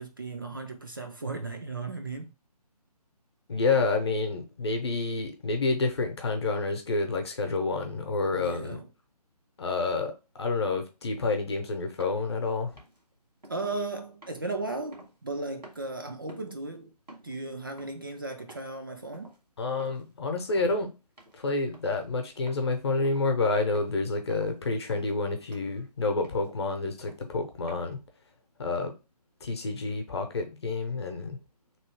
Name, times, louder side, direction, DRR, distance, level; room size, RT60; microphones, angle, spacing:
voice 1, 0.0-2.3 8.3-8.9 13.5-17.0 17.2-19.3, right 3 dB, 35° right, 0.3 m, -36 dB
voice 2, 3.5-8.8 9.6-12.7 19.6-20.9 21.4-28.0 28.6-28.9 29.4-31.4, left 3 dB, 40° left, 0.8 m, -29 dB
sound 1, 12.0-12.2 12.8-13.0 13.4-13.7 14.2-15.4 15.6-15.9 16.3-16.6 17.1-17.4 17.8-18.0 18.5-18.8 19.1-19.4 19.8-20.1 20.4-20.7 21.2-21.4 21.7-22.0 22.5-22.7 23.0-23.3 23.7-24.0 24.3-24.6 24.9-25.2 25.5-25.8 26.2-26.5 27.0-27.3 27.7-27.8, right 1 dB, 85° right, 1.6 m, -51 dB
3.1 x 2.6 x 4.5 m
figure-of-eight pair, 145°, 21 cm